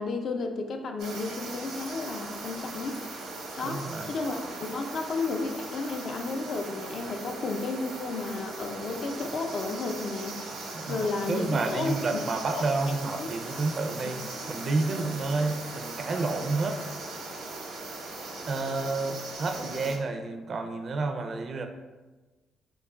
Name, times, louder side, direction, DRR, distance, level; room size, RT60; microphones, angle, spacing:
voice 1, 0.0-3.0 3.6-10.4 10.9-12.0 12.5-12.7 13.2-13.3, left 3 dB, 55° left, 4 dB, 0.4 m, -32 dB
sound 1, 1.0-20.0, right 3 dB, 85° right, 0.7 m, -39 dB
voice 2, 3.6-4.1 10.7-14.2 14.5-16.8 18.5-21.7, right 3 dB, 50° right, 5 dB, 0.4 m, -30 dB
3.7 x 2.3 x 3.5 m, 1.2 s
cardioid pair, 90°, 0 cm